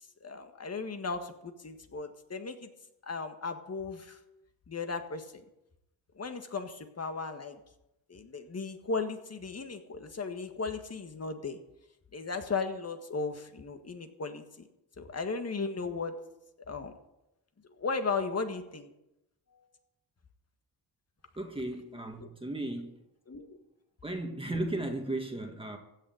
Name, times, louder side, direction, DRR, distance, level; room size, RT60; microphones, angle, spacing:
voice 1, 0.2-2.7 3.1-4.2 4.7-5.4 6.2-7.6 8.1-11.6 12.1-14.4 15.0-16.2 16.7-16.9 17.8-18.9 23.3-23.6, left 4 dB, 35° left, 1.7 m, -36 dB
voice 2, 21.4-23.0 24.0-25.8, right 1 dB, 15° right, 1.8 m, -35 dB
15.5 x 6.6 x 9.0 m
cardioid pair, 95°, 42 cm